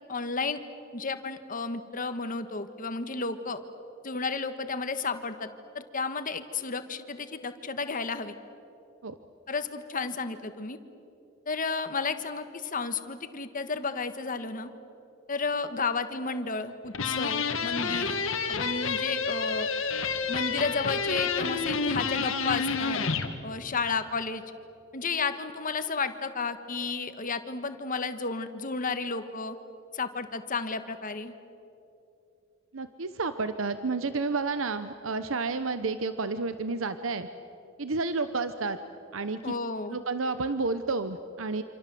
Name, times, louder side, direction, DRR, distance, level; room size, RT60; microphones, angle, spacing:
voice 1, 0.1-0.6 0.9-3.6 4.0-5.5 5.7-8.3 9.5-10.8 11.5-14.7 15.3-18.2 18.5-19.7 20.3-23.0 23.4-24.4 24.9-29.6 29.9-31.3 39.4-40.0, left 4 dB, 45° left, 9 dB, 1.5 m, -32 dB
sound 1, 16.9-23.3, left 5 dB, 80° left, 1.9 m, -29 dB
voice 2, 32.7-37.3 37.8-38.8 39.1-39.5 39.9-41.6, right 3 dB, 80° right, 11 dB, 0.9 m, -30 dB
27.5 x 27.0 x 7.7 m, 2.8 s
head